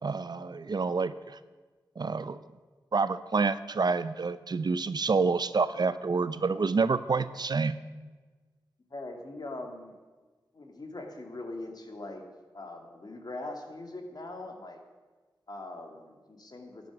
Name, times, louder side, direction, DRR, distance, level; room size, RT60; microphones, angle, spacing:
voice 1, 0.0-1.4 2.0-2.4 2.9-7.8, right 4 dB, 55° right, 14 dB, 0.6 m, -28 dB
voice 2, 8.9-9.9 10.5-12.2 12.5-14.8 15.5-16.9, left 2 dB, 50° left, 3 dB, 2.3 m, -41 dB
12.0 x 10.5 x 6.1 m, 1.3 s
cardioid pair, 45°, 8 cm